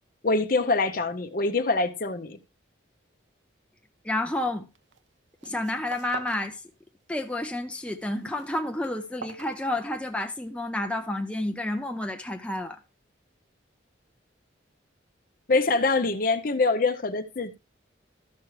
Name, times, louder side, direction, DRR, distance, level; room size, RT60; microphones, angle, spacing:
voice 1, 0.2-2.4 15.5-17.5, left 3 dB, 45° left, 0.7 m, -24 dB
voice 2, 4.0-4.7 5.4-6.6 7.1-12.8, left 1 dB, 5° left, 0.5 m, -30 dB
sound 1, 4.7-5.1 5.3-6.5 6.8-7.4 7.8-10.2, right 4 dB, 70° right, 0.7 m, -45 dB
13.5 x 6.0 x 3.1 m
head